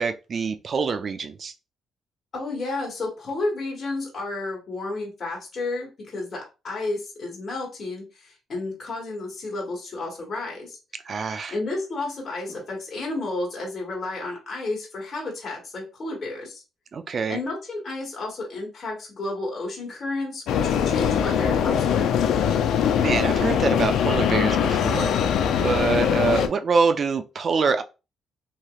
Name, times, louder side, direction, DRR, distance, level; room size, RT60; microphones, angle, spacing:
voice 1, 0.0-1.5 11.1-11.5 16.9-17.4 23.0-25.1 25.6-27.8, right 5 dB, 45° right, 0.4 m, -25 dB
voice 2, 2.3-10.8 11.5-16.6 17.3-22.1, left 2 dB, 45° left, 1.4 m, -31 dB
sound 1, 20.5-26.5, left 8 dB, 80° left, 0.4 m, -22 dB
3.0 x 2.8 x 2.4 m
cardioid pair, 90°, 0 cm